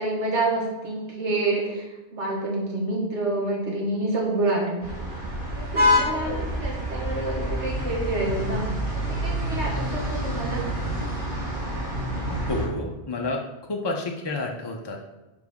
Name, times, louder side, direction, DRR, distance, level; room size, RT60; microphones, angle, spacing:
voice 1, 0.0-5.0 5.5-10.6, right 2 dB, 80° right, -3 dB, 1.5 m, -28 dB
sound 1, 4.8-12.7, equal, 50° right, 2.0 m, -27 dB
voice 2, 12.3-13.4 13.7-15.0, left 2 dB, 40° left, 1 dB, 0.4 m, -30 dB
6.6 x 4.9 x 3.5 m, 1.1 s
omnidirectional pair, 1.2 m